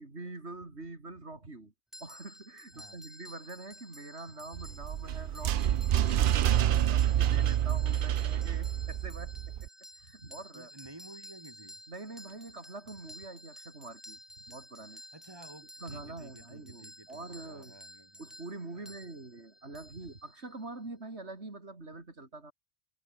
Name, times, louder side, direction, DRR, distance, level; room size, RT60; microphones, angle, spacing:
voice 1, 0.0-1.7 2.0-5.8 6.4-9.7 10.0-10.7 11.9-15.0 15.8-17.8 18.2-22.5, right 2 dB, 80° right, 4.1 m, -45 dB
sound 1, 1.9-20.7, equal, ahead, 1.1 m, -52 dB
sound 2, 4.5-9.7, right 11 dB, 60° right, 0.7 m, -27 dB
voice 2, 10.5-11.8 15.1-18.2 18.7-19.1, right 2 dB, 20° right, 2.3 m, -53 dB
omnidirectional pair, 1.1 m